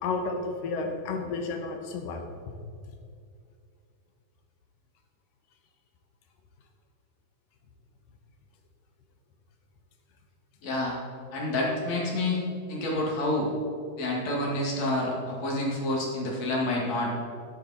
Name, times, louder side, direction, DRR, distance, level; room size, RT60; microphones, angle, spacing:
voice 1, 0.0-2.2, left 4 dB, 70° left, 4 dB, 2.6 m, -31 dB
voice 2, 10.6-11.0 11.3-12.4 12.7-13.5 14.0-17.1, left 1 dB, 50° left, -3 dB, 3.1 m, -28 dB
13.0 x 10.0 x 4.2 m, 2.3 s
omnidirectional pair, 4.4 m